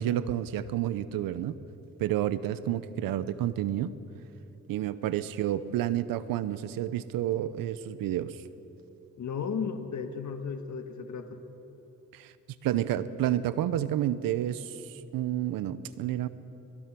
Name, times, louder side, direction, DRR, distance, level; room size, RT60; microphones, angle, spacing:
voice 1, 0.0-1.6 2.0-3.9 4.7-8.4 12.1-12.3 12.6-14.8 15.1-16.3, right 12 dB, 85° right, 15 dB, 0.9 m, -30 dB
voice 2, 9.2-11.4, left 6 dB, 60° left, 5 dB, 1.7 m, -34 dB
23.0 x 21.0 x 6.1 m, 2.9 s
supercardioid pair, 55°, 34 cm